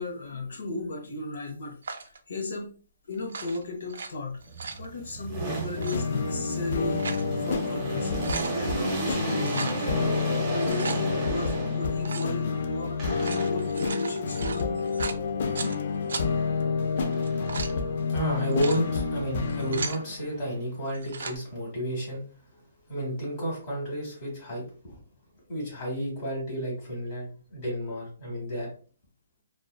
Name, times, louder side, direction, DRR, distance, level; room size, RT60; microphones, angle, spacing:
voice 1, 0.0-1.8 2.0-2.7 3.1-4.4 4.8-7.0 7.4-8.1 8.5-10.0 10.3-14.8, left 2 dB, 70° left, 3 dB, 0.7 m, -35 dB
sound 1, 1.8-2.2 3.2-4.1 4.4-4.9 5.7-6.0 6.7-7.3 7.7-7.8 8.0-8.6 9.4-9.8 10.5-11.0 12.0-12.3 13.0-15.8 16.1-16.2 17.1-17.7 18.4-18.8 19.4-20.0 20.9-21.4, right 5 dB, 70° right, 0.3 m, -36 dB
sound 2, 4.5-12.1 13.0-13.8 17.0-17.8 18.2-20.6, right 3 dB, 10° right, 0.7 m, -35 dB
sound 3, 5.8-20.1, left 5 dB, 50° left, 0.3 m, -29 dB
voice 2, 18.1-22.3 22.9-24.9 25.5-28.7, right 1 dB, 25° left, -3 dB, 1.2 m, -31 dB
2.5 x 2.2 x 2.2 m, 0.41 s
hypercardioid pair, 170°, 0 cm